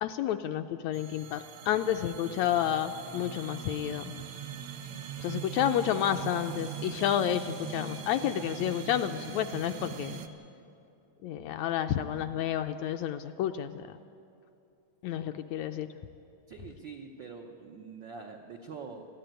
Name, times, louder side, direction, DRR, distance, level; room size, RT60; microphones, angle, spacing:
voice 1, 0.0-4.1 5.2-10.2 11.2-14.0 15.0-15.9, left 10 dB, 80° left, 7 dB, 1.7 m, -30 dB
sound 1, 0.9-10.3, right 8 dB, 65° right, 1.4 m, -41 dB
voice 2, 6.5-6.9 16.5-19.1, right 5 dB, 90° right, 2 dB, 1.0 m, -45 dB
20.0 x 14.0 x 9.1 m, 2.6 s
omnidirectional pair, 3.5 m